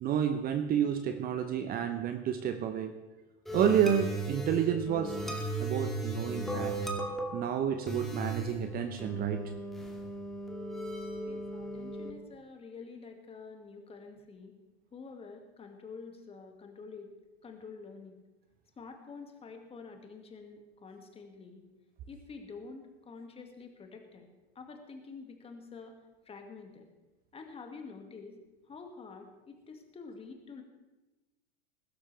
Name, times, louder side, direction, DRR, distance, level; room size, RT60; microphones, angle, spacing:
voice 1, 0.0-2.9 3.5-6.8 7.3-9.4, right 8 dB, 30° right, 8 dB, 0.9 m, -30 dB
sound 1, 3.4-12.1, right 1 dB, ahead, 2.3 m, -37 dB
voice 2, 11.3-14.5 14.9-17.1 17.4-18.1 18.8-21.6 22.1-24.3 24.6-25.9 26.3-26.9 27.3-28.3 28.7-30.6, left 4 dB, 15° left, 4 dB, 2.1 m, -48 dB
21.5 x 12.5 x 3.4 m, 1.1 s
figure-of-eight pair, 100°, 32 cm